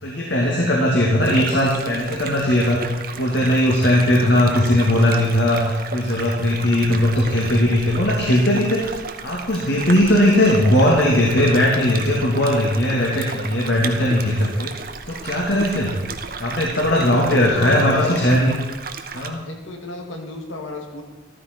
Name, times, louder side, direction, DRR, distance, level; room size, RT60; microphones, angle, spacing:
voice 1, 0.0-2.8 3.2-8.9 9.2-14.7 15.1-15.9 16.4-18.5 19.1-19.4, left 1 dB, 60° left, -3 dB, 2.4 m, -18 dB
sound 1, 1.2-19.3, right 5 dB, 45° right, 1.0 m, -34 dB
voice 2, 16.7-18.2 19.4-21.0, left 2 dB, 85° left, 2 dB, 2.5 m, -32 dB
14.0 x 14.0 x 4.6 m, 1.1 s
head